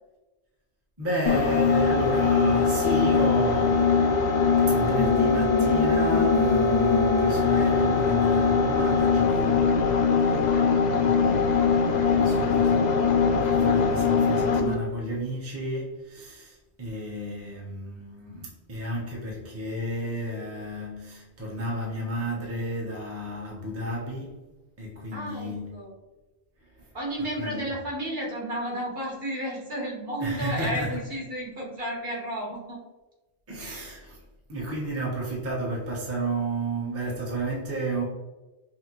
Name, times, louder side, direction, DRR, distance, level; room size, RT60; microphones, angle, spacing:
voice 1, 1.0-4.0 4.7-9.9 10.2-10.5 11.0-24.4 24.8-25.9 26.7-26.9 27.4-27.7 30.2-31.0 33.5-34.2 34.5-38.0, right 1 dB, 15° right, 0.7 m, -32 dB
sound 1, 1.3-14.8, left 5 dB, 55° left, 0.5 m, -21 dB
voice 2, 25.1-25.9 26.9-32.8, right 1 dB, 55° right, 1.5 m, -32 dB
5.8 x 2.0 x 2.9 m
omnidirectional pair, 1.2 m